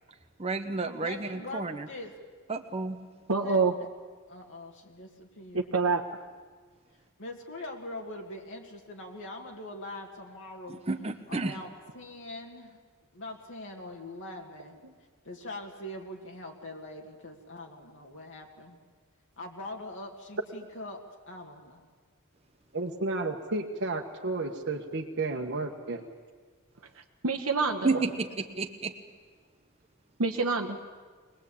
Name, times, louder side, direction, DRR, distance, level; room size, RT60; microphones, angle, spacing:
voice 1, 0.4-1.9 2.5-3.0 10.9-11.6 27.8-28.9, right 3 dB, 30° right, 5 dB, 1.0 m, -31 dB
voice 2, 1.0-2.1 3.4-3.9 4.3-5.7 7.2-10.8 11.3-12.8 13.1-14.8 15.2-18.8 19.4-21.0 21.3-21.9, left 1 dB, 60° left, 0 dB, 2.1 m, -42 dB
voice 3, 3.3-3.7 5.5-6.0 14.8-14.9 27.2-27.9 30.2-30.8, right 4 dB, 75° right, 3 dB, 1.2 m, -26 dB
voice 4, 22.7-26.0 27.8-28.0, right 3 dB, 55° right, 1 dB, 1.4 m, -32 dB
23.5 x 20.0 x 8.7 m, 1.5 s
head